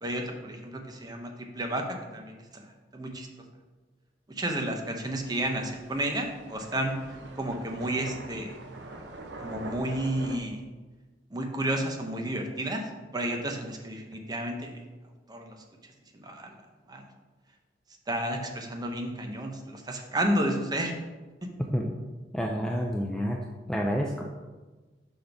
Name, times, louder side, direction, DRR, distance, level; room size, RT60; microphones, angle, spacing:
voice 1, 0.0-1.8 2.1-2.6 2.9-3.3 4.3-6.9 7.4-8.5 9.4-10.6 11.3-12.8 13.1-14.7 15.3-15.6 16.1-16.5 16.9-17.0 18.1-20.9, right 1 dB, 25° right, 3 dB, 0.7 m, -31 dB
sound 1, 5.2-10.4, right 2 dB, 85° right, 0.7 m, -44 dB
voice 2, 22.3-23.4 23.7-24.2, equal, 5° left, 0 dB, 0.4 m, -28 dB
5.0 x 4.0 x 5.7 m, 1.3 s
head